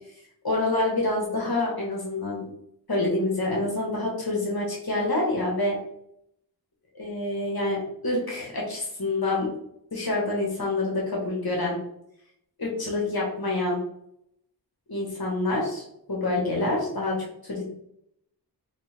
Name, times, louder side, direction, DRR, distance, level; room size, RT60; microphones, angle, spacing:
voice 1, 0.4-2.4 2.9-5.8 6.9-9.5 9.9-11.8 12.6-13.8 14.9-15.8 16.1-17.6, left 2 dB, 60° left, -3 dB, 1.1 m, -27 dB
3.3 x 3.2 x 3.2 m, 0.74 s
wide cardioid pair, 55°, 41 cm